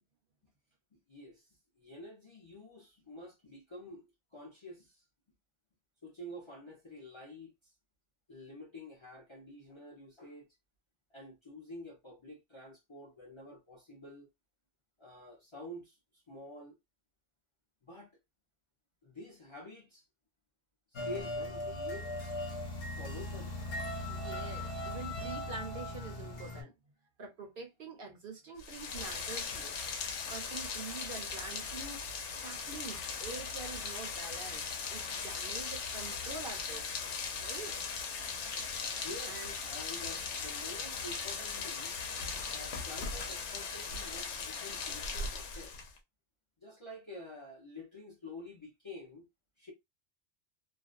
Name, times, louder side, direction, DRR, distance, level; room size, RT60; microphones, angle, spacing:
voice 1, 1.1-1.5 1.8-5.0 6.0-7.7 8.3-10.5 11.1-14.3 15.0-16.7 17.8-18.1 19.0-20.0 20.9-22.3 22.9-23.5 39.0-42.0 42.5-45.7 46.6-49.3 49.6-49.7, left 1 dB, 35° left, 0.6 m, -48 dB
sound 1, 21.0-26.6, left 1 dB, 60° left, 0.9 m, -39 dB
voice 2, 24.0-26.7 27.2-29.7 30.3-32.0 32.4-34.6 34.9-36.9 37.4-37.8 39.3-39.5, right 4 dB, 55° right, 0.7 m, -45 dB
Rain, 28.6-46.0, left 5 dB, 85° left, 0.9 m, -39 dB
2.5 x 2.1 x 2.4 m
omnidirectional pair, 1.2 m